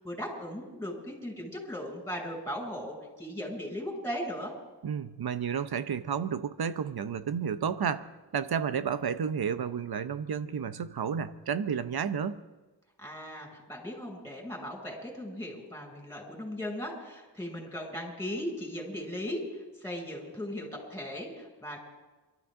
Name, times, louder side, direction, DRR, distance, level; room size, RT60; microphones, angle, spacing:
voice 1, 0.0-4.5 13.0-19.4 19.8-21.8, equal, 5° left, 0 dB, 6.5 m, -38 dB
voice 2, 4.8-12.4, right 7 dB, 60° right, 12 dB, 0.9 m, -31 dB
28.5 x 13.5 x 3.8 m, 1.2 s
cardioid pair, 60°, 42 cm